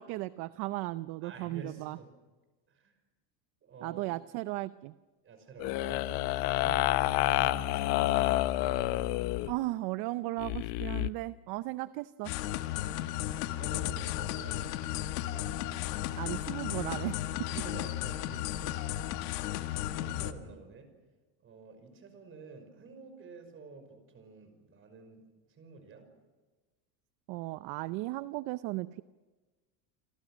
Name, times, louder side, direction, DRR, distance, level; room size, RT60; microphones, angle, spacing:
voice 1, 0.0-2.0 3.8-4.9 6.6-6.9 9.5-12.3 16.2-17.5 27.3-29.0, right 19 dB, 55° right, 14 dB, 0.7 m, -36 dB
voice 2, 1.2-2.1 2.7-2.9 3.6-4.0 5.2-6.0 6.3-6.4 7.1-8.3 12.6-13.1 13.4-15.5 17.5-19.0 19.5-20.9 21.4-25.2 25.5-26.0, right 4 dB, 25° right, 7 dB, 5.6 m, -50 dB
sound 1, 5.6-9.5 10.4-11.1, left 16 dB, 60° left, 1.0 m, -29 dB
sound 2, 12.2-20.3, left 14 dB, 85° left, 1.8 m, -34 dB
29.0 x 25.5 x 6.3 m, 1.3 s
cardioid pair, 165°, 46 cm